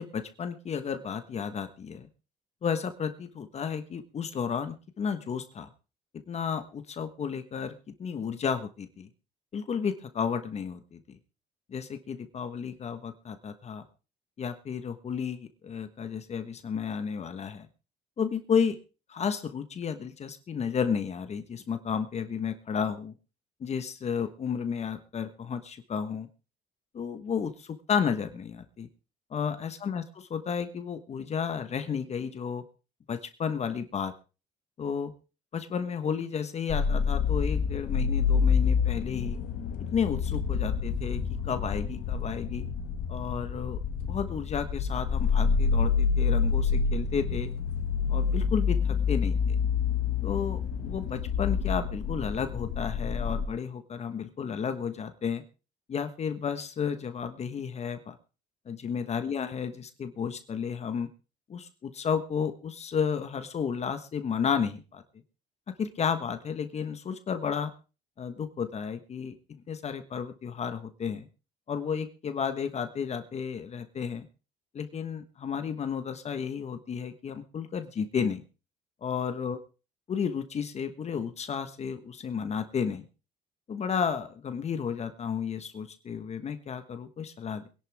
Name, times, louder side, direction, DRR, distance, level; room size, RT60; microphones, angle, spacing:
voice 1, 0.0-2.1 2.6-5.7 6.3-9.1 9.5-11.2 11.7-13.8 14.4-17.7 18.2-18.8 19.1-23.1 23.6-26.3 26.9-28.9 29.3-32.6 33.1-34.1 34.8-35.1 35.5-39.4 39.9-42.6 43.1-43.8 44.1-47.5 48.1-49.6 50.2-55.4 55.9-58.2 58.7-61.1 61.5-65.0 65.8-67.7 68.2-69.4 69.7-71.3 71.7-74.3 74.7-78.4 79.0-79.6 80.1-83.0 83.7-87.7, left 7 dB, 40° left, 9 dB, 1.3 m, -32 dB
sound 1, 36.7-53.5, left 6 dB, 75° left, 1.7 m, -28 dB
23.0 x 11.0 x 3.5 m, 0.33 s
cardioid pair, 110°, 17 cm